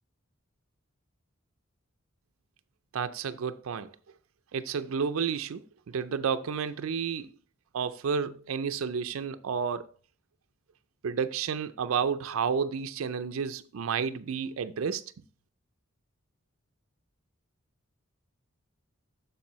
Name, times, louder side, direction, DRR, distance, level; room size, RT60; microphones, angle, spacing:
voice 1, 2.9-3.9 4.5-7.3 7.7-9.9 11.0-15.0, right 6 dB, 80° right, 0.4 m, -31 dB
7.2 x 6.7 x 3.0 m
head